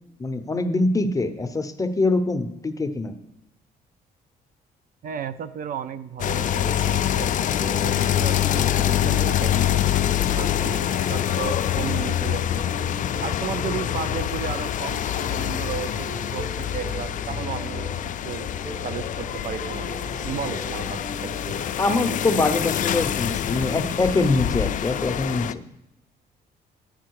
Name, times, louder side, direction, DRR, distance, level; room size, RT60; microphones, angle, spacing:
voice 1, 0.2-3.1 21.8-25.6, left 3 dB, 20° left, 9 dB, 0.7 m, -24 dB
voice 2, 5.0-7.5 7.8-9.8 10.4-12.7 13.2-18.0 18.2-18.5 18.8-21.4, right 8 dB, 55° right, 13 dB, 0.5 m, -34 dB
sound 1, 6.2-25.5, left 11 dB, 50° left, 0.4 m, -25 dB
sound 2, 6.6-24.6, right 4 dB, 30° right, 1.5 m, -41 dB
10.5 x 8.6 x 4.7 m, 0.84 s
cardioid pair, 110°, 17 cm